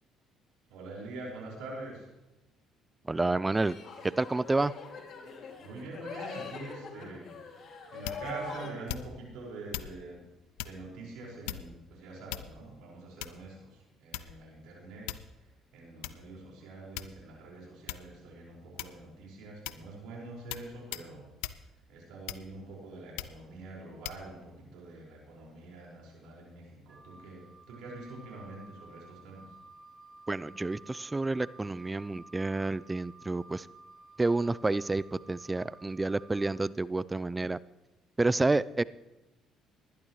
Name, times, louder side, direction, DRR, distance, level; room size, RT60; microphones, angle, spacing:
voice 1, 0.7-2.1 5.6-10.2 10.6-21.3 21.9-29.5, right 2 dB, 80° right, -3 dB, 5.4 m, -45 dB
voice 2, 3.1-3.7 4.0-4.7 30.3-33.7 34.2-37.6 38.2-38.8, right 2 dB, 20° right, 19 dB, 0.4 m, -29 dB
sound 1, 3.6-8.7, left 5 dB, 60° left, 2.6 m, -43 dB
sound 2, 8.0-8.4 8.9-9.3 9.7-10.0 10.6-10.8 11.5-11.8 12.3-12.7 13.2-13.5 14.1-14.5 15.1-15.4 16.0-16.2 17.0-17.4 17.9-18.1 18.8-19.1 19.7-19.9 20.5-20.7 20.9-21.1 21.4-21.6 22.3-22.7 23.2-23.4 24.0-24.2, left 14 dB, 85° left, 0.5 m, -39 dB
Wind instrument woodwind instrument, 26.9-36.5, right 3 dB, 40° right, 4.0 m, -54 dB
19.5 x 11.5 x 3.2 m, 1.0 s
supercardioid pair, 65°, 0 cm